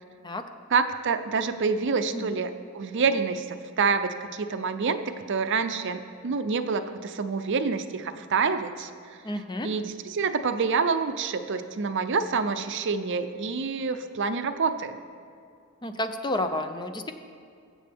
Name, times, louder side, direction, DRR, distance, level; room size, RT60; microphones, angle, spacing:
voice 1, 0.7-8.9 9.6-15.0, right 5 dB, 60° right, 9 dB, 0.6 m, -27 dB
voice 2, 9.2-9.7 15.8-17.1, left 1 dB, 20° left, 8 dB, 0.5 m, -30 dB
20.0 x 7.6 x 3.5 m, 2.4 s
head